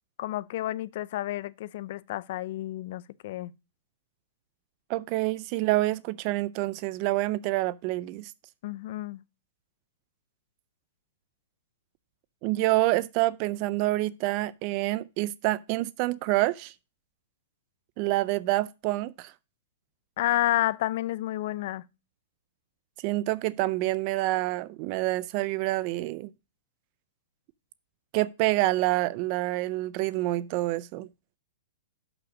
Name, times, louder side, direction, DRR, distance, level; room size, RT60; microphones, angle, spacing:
voice 1, 0.2-3.5 8.6-9.2 20.2-21.8, left 15 dB, 55° left, 0.4 m, -30 dB
voice 2, 4.9-8.3 12.4-16.7 18.0-19.3 23.0-26.3 28.1-31.1, right 18 dB, 40° right, 0.4 m, -27 dB
6.5 x 5.9 x 5.0 m
hypercardioid pair, 145°, 0 cm